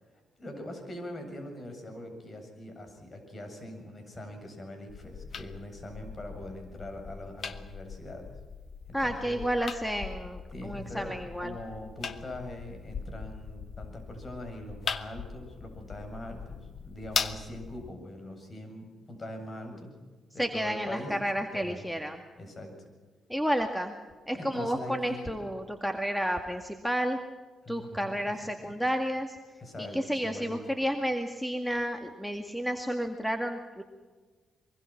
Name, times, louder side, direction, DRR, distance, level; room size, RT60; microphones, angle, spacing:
voice 1, 0.4-8.3 8.9-9.4 10.5-19.9 20.3-21.8 22.4-22.8 24.3-25.3 27.6-28.1 28.6-28.7 29.6-30.6, left 1 dB, 35° left, 5 dB, 7.9 m, -42 dB
sound 1, 4.9-17.9, left 6 dB, 55° left, 1.4 m, -40 dB
voice 2, 8.9-11.6 20.4-22.2 23.3-23.9 24.3-27.2 27.7-29.4 29.8-33.8, equal, ahead, 5 dB, 2.1 m, -31 dB
24.0 x 24.0 x 6.0 m, 1.4 s
cardioid pair, 75°, 0 cm